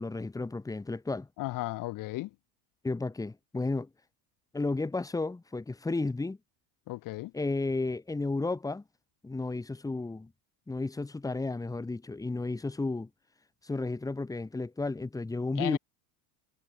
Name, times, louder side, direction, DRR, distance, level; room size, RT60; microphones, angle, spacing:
voice 1, 0.0-1.3 2.8-3.9 4.5-6.4 7.3-8.8 9.2-10.3 10.7-13.1 13.6-15.8, left 3 dB, 5° left, 4.8 m, -33 dB
voice 2, 1.4-2.3 6.9-7.3 15.6-15.8, left 18 dB, 40° left, 4.5 m, -34 dB
supercardioid pair, 160°, 48 cm